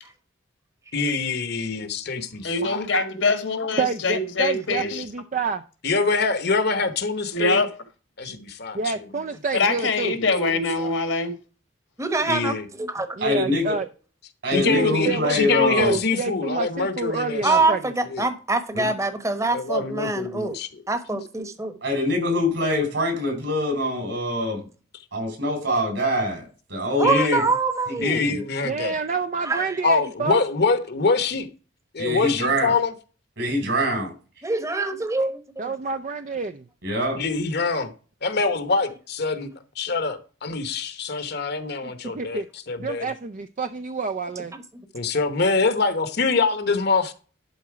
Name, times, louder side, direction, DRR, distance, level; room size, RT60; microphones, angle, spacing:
voice 1, 0.9-2.8 4.7-5.0 5.8-7.6 8.2-8.9 10.1-10.9 12.3-12.7 14.5-17.7 18.1-18.3 19.5-20.7 27.0-27.4 28.0-28.9 29.8-31.4 31.9-32.9 37.2-37.9 38.2-39.5 39.8-43.1 44.9-47.1, left 4 dB, 55° left, 1.0 m, -25 dB
voice 2, 2.4-5.0 7.3-7.7 9.5-11.3, left 3 dB, 75° left, 1.6 m, -23 dB
voice 3, 3.8-5.6 8.7-10.2 13.2-13.9 14.7-17.9 28.6-30.4 35.6-36.6 41.8-42.5 42.8-44.5, right 4 dB, 40° right, 0.4 m, -28 dB
voice 4, 12.0-13.1 17.4-20.5 20.9-21.7 27.0-28.3 29.4-29.8 34.4-35.4, right 3 dB, 15° right, 1.1 m, -24 dB
voice 5, 13.2-13.8 14.4-15.9 18.7-18.9 21.8-24.7 25.1-27.4 27.9-28.4 32.0-32.7 33.4-34.1 36.8-37.2, left 1 dB, 65° right, 4.1 m, -24 dB
11.5 x 4.2 x 4.8 m
head